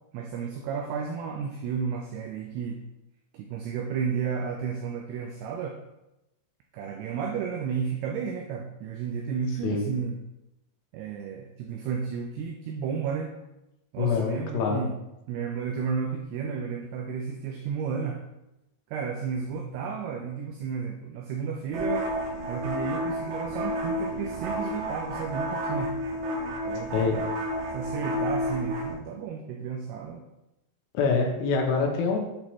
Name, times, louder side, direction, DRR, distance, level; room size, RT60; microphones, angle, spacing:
voice 1, 0.1-2.8 3.3-5.8 6.7-10.2 10.9-13.3 13.9-15.0 15.3-18.2 18.9-22.1 22.5-25.9 26.7-27.3 27.7-30.3, right 6 dB, 85° right, 2 dB, 2.3 m, -32 dB
voice 2, 14.0-14.9 26.9-27.2 30.9-32.2, left 4 dB, 80° left, 2 dB, 2.9 m, -25 dB
sound 1, 21.7-28.9, equal, 70° right, 2.9 m, -31 dB
8.5 x 4.0 x 3.0 m, 0.92 s
omnidirectional pair, 5.2 m